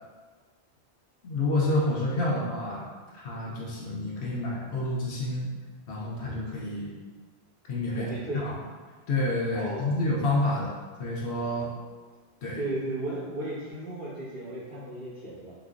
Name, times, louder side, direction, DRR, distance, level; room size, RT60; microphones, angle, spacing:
voice 1, 1.2-2.8 3.1-5.5 5.9-6.9 7.7-8.1 8.4-8.5 9.1-11.7 12.4-12.6, left 2 dB, 85° left, -5 dB, 1.0 m, -29 dB
voice 2, 7.9-8.4 9.5-9.9 12.5-15.5, right 2 dB, 60° right, -18 dB, 1.8 m, -35 dB
3.7 x 3.0 x 2.5 m, 1.4 s
omnidirectional pair, 1.1 m